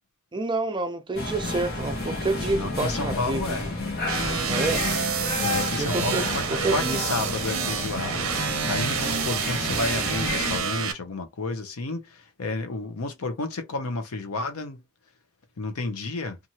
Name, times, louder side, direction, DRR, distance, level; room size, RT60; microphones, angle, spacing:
voice 1, 0.3-3.4 4.5-4.8 5.8-7.0, right 2 dB, 20° right, 0.5 m, -28 dB
sound 1, 1.1-10.6, left 2 dB, 45° left, 0.9 m, -31 dB
voice 2, 2.5-3.7 4.1-4.2 5.4-8.3 8.7-14.8 15.6-16.4, left 3 dB, 80° left, 0.7 m, -31 dB
sound 2, 4.1-10.9, right 7 dB, 65° right, 0.6 m, -28 dB
2.9 x 2.5 x 2.7 m
head